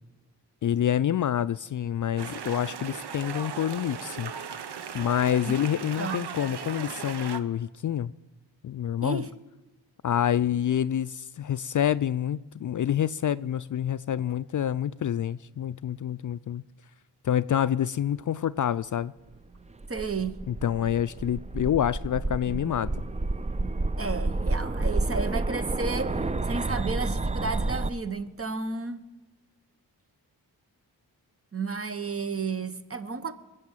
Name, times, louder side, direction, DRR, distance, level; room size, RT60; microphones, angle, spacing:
voice 1, 0.6-4.3 4.9-8.1 8.6-9.2 10.0-16.6 17.2-19.1 20.5-23.0, left 10 dB, 45° left, 0.4 m, -27 dB
sound 1, 2.2-7.4, right 7 dB, 65° right, 1.0 m, -37 dB
voice 2, 6.0-6.4 9.0-9.3 19.9-20.4 24.0-29.1 31.5-33.3, right 4 dB, 30° right, 1.2 m, -32 dB
sound 2, 19.5-27.9, right 2 dB, 15° right, 0.5 m, -30 dB
21.5 x 7.7 x 7.4 m
supercardioid pair, 40°, 43 cm